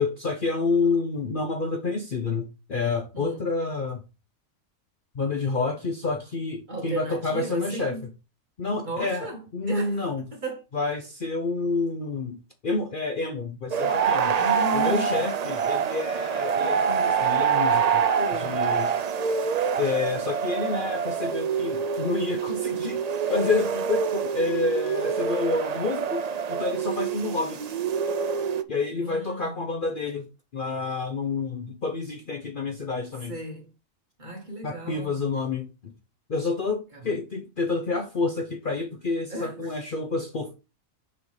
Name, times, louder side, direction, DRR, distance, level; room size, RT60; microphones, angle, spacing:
voice 1, 0.0-4.0 5.1-8.0 8.6-10.2 10.7-14.4 14.7-18.1 18.4-18.9 19.8-23.0 23.3-26.2 26.5-27.6 28.7-30.3 30.5-33.3 34.6-35.9 36.3-40.5, left 4 dB, 45° left, 0.8 m, -28 dB
voice 2, 6.7-8.1 8.8-10.0 10.4-10.6 14.4-15.8 18.2-18.6 29.0-29.6 33.3-33.7 34.2-35.2 36.9-37.0 39.3-39.7, right 1 dB, 35° right, 1.9 m, -35 dB
sound 1, 13.7-28.6, right 6 dB, 80° right, 0.3 m, -26 dB
6.6 x 4.5 x 4.8 m
omnidirectional pair, 1.4 m